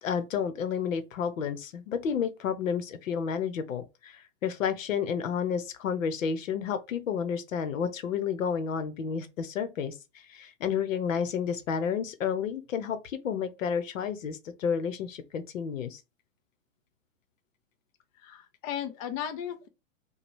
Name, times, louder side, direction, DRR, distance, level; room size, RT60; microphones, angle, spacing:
voice 1, 0.0-9.9 10.3-16.0, left 7 dB, 75° left, 0.9 m, -31 dB
voice 2, 18.2-19.7, left 9 dB, 30° left, 0.5 m, -35 dB
5.0 x 2.3 x 3.1 m
hypercardioid pair, 125°, 40 cm